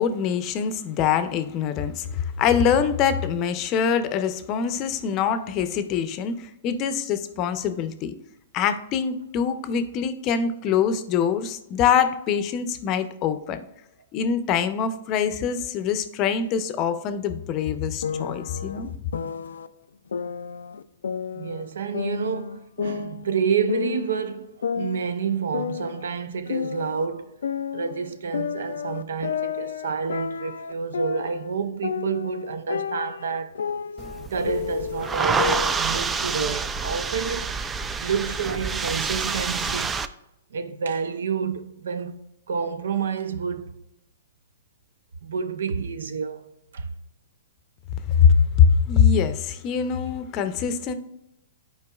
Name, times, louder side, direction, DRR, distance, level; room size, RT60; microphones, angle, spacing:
voice 1, 0.0-8.1 8.5-13.6 14.1-18.9 48.1-50.9, left 7 dB, 35° left, 0.6 m, -23 dB
sound 1, 18.0-19.7 20.1-21.7 21.9-24.2 24.6-27.1 27.4-31.5 31.8-35.8, left 7 dB, 85° left, 0.3 m, -31 dB
voice 2, 21.3-27.3 27.7-33.6 34.2-37.5 38.0-40.0 40.5-43.8 45.2-46.9, right 6 dB, 80° right, 0.6 m, -29 dB
sound 2, 34.0-40.1, right 5 dB, 15° right, 0.3 m, -28 dB
9.7 x 4.5 x 2.3 m
hypercardioid pair, 140°, 0 cm